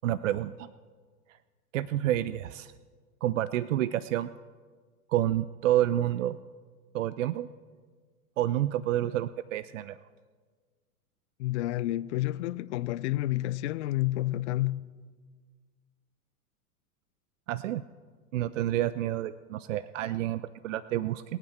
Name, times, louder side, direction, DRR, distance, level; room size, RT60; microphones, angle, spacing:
voice 1, 0.0-0.7 1.7-2.7 3.2-4.3 5.1-6.4 6.9-7.5 8.4-10.0 17.5-17.8 18.3-21.2, right 13 dB, 60° right, 0.5 m, -29 dB
voice 2, 11.4-14.9, left 16 dB, 50° left, 0.6 m, -30 dB
25.0 x 8.8 x 4.5 m
figure-of-eight pair, 100°, 45 cm